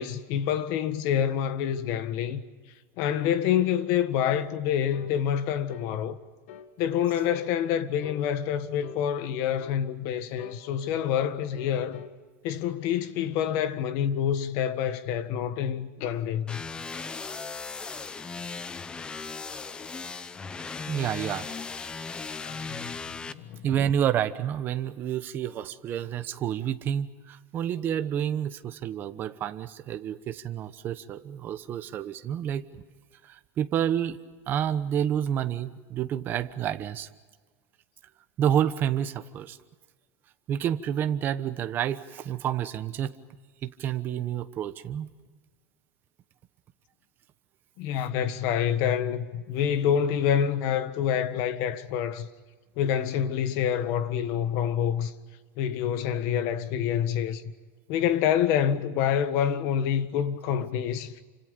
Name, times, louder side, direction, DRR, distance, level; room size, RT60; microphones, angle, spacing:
voice 1, 0.0-2.4 3.0-6.2 6.8-12.0 12.4-16.6 22.4-22.9 23.3-23.6 47.8-52.3 52.8-55.1 55.6-57.4 57.9-61.1, left 9 dB, 50° left, 1.6 m, -27 dB
sound 1, 4.9-5.2 5.7-6.0 6.5-6.7 7.2-7.5 8.0-8.3 8.8-9.1 9.6-9.8 10.4-12.2, left 9 dB, 80° left, 1.9 m, -44 dB
sound 2, 16.5-23.3, left 4 dB, 15° left, 0.7 m, -37 dB
voice 2, 20.9-21.5 23.6-32.6 33.3-34.2 34.5-37.1 38.4-39.6 40.5-43.2 43.6-45.1, right 9 dB, 30° right, 1.1 m, -29 dB
29.5 x 26.0 x 5.3 m
supercardioid pair, 165°, 7 cm